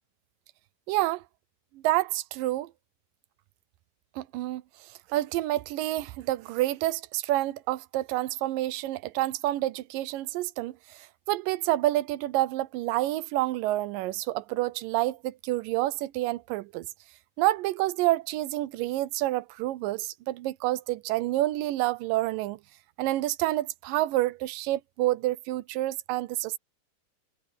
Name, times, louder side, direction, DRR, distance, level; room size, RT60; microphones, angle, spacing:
voice 1, 0.9-1.2 1.8-2.7 4.2-4.6 5.1-11.0 11.3-16.9 17.4-22.6 23.0-26.6, right 16 dB, 85° right, 2.3 m, -28 dB
omnidirectional pair, 3.9 m